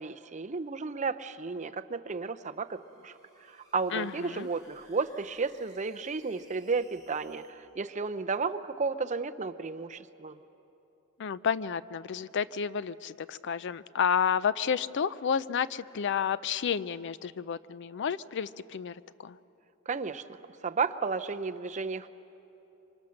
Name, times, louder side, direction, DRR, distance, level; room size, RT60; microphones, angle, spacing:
voice 1, 0.0-3.1 3.4-10.4 19.9-22.1, right 4 dB, 35° right, 9 dB, 0.6 m, -33 dB
sound 1, 2.1-7.5, right 1 dB, 20° left, 5.1 m, -61 dB
voice 2, 3.9-4.5 11.2-18.9 19.2-19.4, left 7 dB, 55° left, 17 dB, 0.4 m, -31 dB
26.0 x 24.5 x 6.5 m, 3.0 s
head